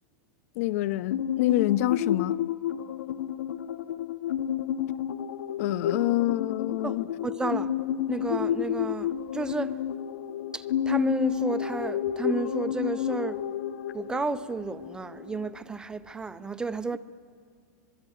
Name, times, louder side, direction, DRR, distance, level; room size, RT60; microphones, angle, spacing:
voice 1, 0.6-2.4 5.6-7.1, left 15 dB, 55° left, 0.6 m, -26 dB
sound 1, 1.1-15.5, left 10 dB, 85° left, 1.1 m, -31 dB
voice 2, 6.8-7.7 8.1-9.1 9.3-9.7 10.5-13.4 13.9-17.0, right 3 dB, 10° right, 0.6 m, -32 dB
24.0 x 23.0 x 9.3 m
supercardioid pair, 150°, 9 cm